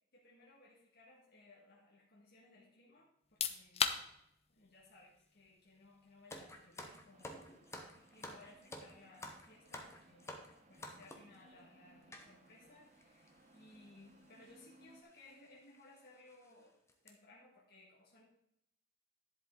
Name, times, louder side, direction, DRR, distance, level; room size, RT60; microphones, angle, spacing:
voice 1, 0.1-4.2 4.5-7.5 7.8-10.4 10.7-16.7 17.0-18.2, left 2 dB, 55° left, -5 dB, 1.8 m, -62 dB
sound 1, 3.2-15.8, left 7 dB, 35° left, 0.6 m, -46 dB
sound 2, 6.3-11.4 12.1-12.3 13.0-13.1 13.3-13.5 14.4-14.6 15.1-15.2 15.7-15.8 16.3-16.5 16.9-17.1, left 1 dB, 15° left, 1.0 m, -50 dB
sound 3, 7.1-15.0, right 1 dB, 40° right, 0.9 m, -65 dB
10.5 x 7.7 x 3.8 m, 0.78 s
head